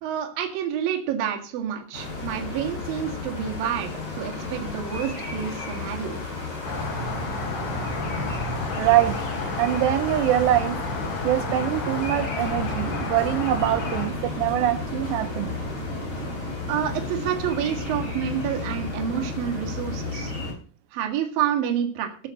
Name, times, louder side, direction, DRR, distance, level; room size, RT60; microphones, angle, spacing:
voice 1, 0.0-6.2 16.7-20.3 20.9-22.1, right 9 dB, 60° right, 3 dB, 3.5 m, -28 dB
sound 1, 1.9-20.5, left 3 dB, 25° left, 4.3 m, -34 dB
Rain, 6.6-14.1, left 2 dB, 65° left, 5.8 m, -31 dB
voice 2, 8.8-9.2 9.6-10.8 11.2-15.5, right 14 dB, 85° right, 8 dB, 3.0 m, -23 dB
sound 2, 12.4-20.5, left 1 dB, 40° right, 2.1 m, -34 dB
15.0 x 8.0 x 6.5 m, 0.40 s
omnidirectional pair, 4.8 m